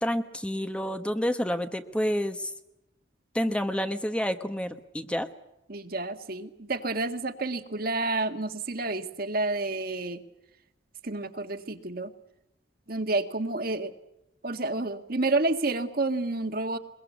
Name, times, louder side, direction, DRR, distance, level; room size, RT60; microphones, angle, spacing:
voice 1, 0.0-2.5 3.3-5.3, equal, 5° left, 8 dB, 1.1 m, -29 dB
voice 2, 5.7-10.2 11.0-12.1 12.9-13.9 14.4-16.8, right 2 dB, 50° right, 8 dB, 1.8 m, -29 dB
23.0 x 22.5 x 8.4 m, 0.88 s
head